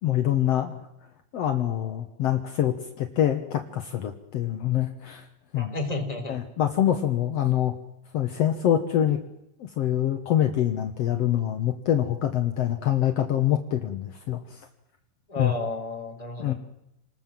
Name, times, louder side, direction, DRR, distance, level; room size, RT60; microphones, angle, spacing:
voice 1, 0.0-0.8 1.3-5.2 5.5-5.7 6.3-7.7 8.1-9.2 9.6-14.6 15.4-15.5 16.4-16.5, left 11 dB, 70° left, 5 dB, 1.5 m, -25 dB
voice 2, 5.6-6.4 15.3-16.5, left 2 dB, 10° left, 2 dB, 3.7 m, -32 dB
28.5 x 20.5 x 7.6 m, 0.81 s
omnidirectional pair, 4.8 m